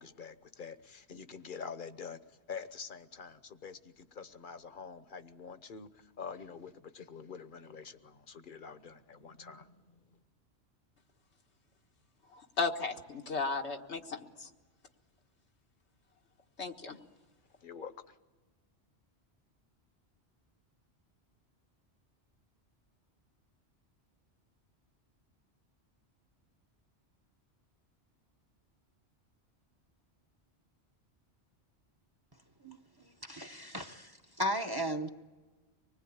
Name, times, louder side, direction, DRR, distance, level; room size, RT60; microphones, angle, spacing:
voice 1, 0.0-9.9 17.6-18.2, left 6 dB, 50° left, 1.2 m, -46 dB
voice 2, 12.3-14.5 16.6-17.0, left 4 dB, 85° left, 1.8 m, -35 dB
voice 3, 33.2-34.1 34.4-35.1, equal, 25° right, 0.9 m, -35 dB
25.5 x 20.0 x 8.6 m
omnidirectional pair, 1.1 m